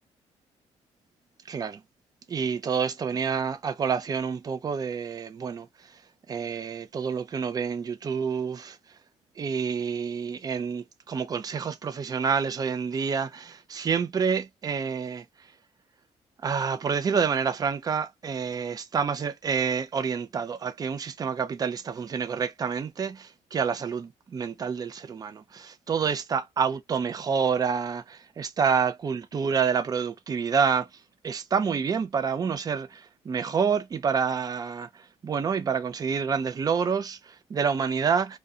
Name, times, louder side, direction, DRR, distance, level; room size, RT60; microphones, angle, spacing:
voice 1, 1.5-1.8 2.3-5.7 6.3-8.8 9.4-15.2 16.4-30.9 31.2-34.9 35.2-38.4, right 6 dB, 30° right, 0.5 m, -28 dB
2.5 x 2.2 x 2.6 m
cardioid pair, 115°, 12 cm